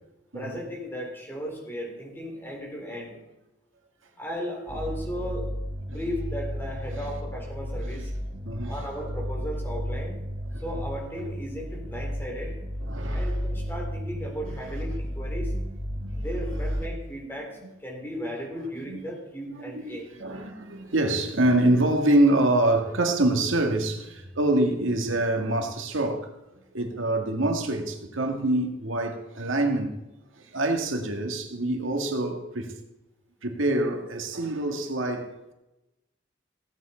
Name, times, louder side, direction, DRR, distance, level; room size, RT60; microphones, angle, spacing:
voice 1, 0.3-3.2 4.2-5.5 5.9-8.1 8.7-10.2 10.6-12.6 13.1-15.5 16.2-20.0, equal, 10° left, 3.6 m, -36 dB
sound 1, 4.7-16.8, equal, 15° right, 4.2 m, -33 dB
voice 2, 8.3-8.8 10.5-10.6 12.8-13.4 14.4-14.5 15.5-15.6 16.0-16.6 18.9-19.0 19.6-26.3 26.7-30.0 30.3-32.7 33.4-35.5, right 1 dB, 90° right, 1.8 m, -26 dB
16.0 x 8.6 x 4.4 m
head